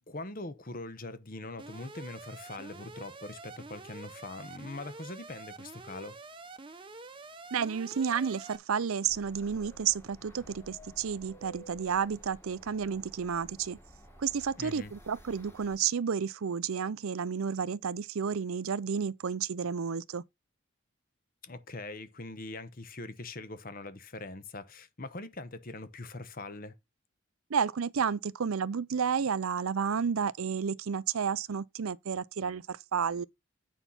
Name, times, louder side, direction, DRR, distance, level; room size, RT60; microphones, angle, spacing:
voice 1, 0.0-6.2 14.6-14.9 21.4-26.7, left 2 dB, 40° left, 1.0 m, -42 dB
Alarm, 1.6-8.6, right 3 dB, 25° right, 0.9 m, -47 dB
voice 2, 7.5-13.8 14.2-20.2 27.5-33.2, right 7 dB, 75° right, 0.5 m, -31 dB
sound 1, 9.1-15.8, equal, 10° left, 1.9 m, -53 dB
9.0 x 5.7 x 4.1 m
head